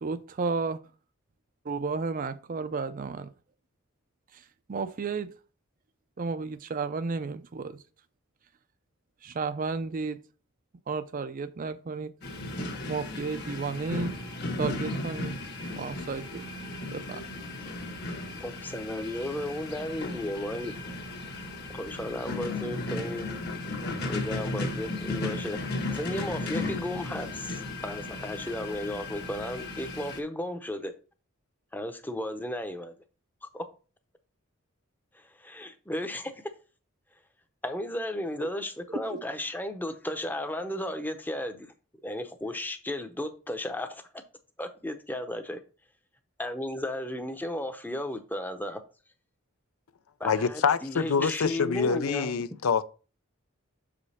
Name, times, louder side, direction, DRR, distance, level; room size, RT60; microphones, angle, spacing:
voice 1, 0.0-0.8 1.6-3.3 4.3-4.4 4.7-5.3 6.2-7.8 9.2-10.2 10.9-12.1 12.9-14.1 14.6-15.3 15.8-16.5 16.9-17.2 39.1-39.2, right 4 dB, 40° right, 0.4 m, -32 dB
sound 1, 12.2-30.2, left 2 dB, 50° left, 1.3 m, -35 dB
voice 2, 18.4-20.7 21.7-23.3 24.1-25.6 25.9-30.9 31.7-32.9 33.5-33.6 35.1-36.3 37.6-41.7 42.0-44.0 44.6-45.6 46.4-48.8 50.2-52.3, left 1 dB, 10° left, 0.7 m, -34 dB
voice 3, 50.2-52.8, left 5 dB, 85° left, 0.5 m, -26 dB
6.4 x 5.1 x 4.2 m
head